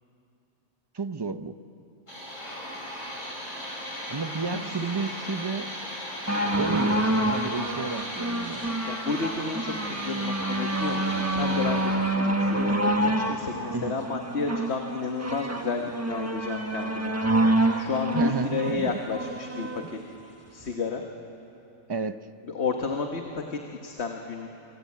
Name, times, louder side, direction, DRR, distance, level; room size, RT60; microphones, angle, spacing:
voice 1, 0.9-1.6 4.1-5.7 6.5-8.7 13.7-14.0 18.1-19.0 21.9-22.3, right 4 dB, 30° right, 11 dB, 0.5 m, -32 dB
computer PC processing data, 2.1-11.9, equal, 70° left, 8.3 m, -37 dB
sound 1, 6.3-19.8 20.6-20.7, right 1 dB, 10° right, 1.3 m, -27 dB
voice 2, 8.9-17.1 17.7-20.0 20.5-21.0 22.5-24.5, left 4 dB, 55° left, 3 dB, 1.6 m, -32 dB
26.5 x 24.5 x 8.6 m, 2.9 s
omnidirectional pair, 1.4 m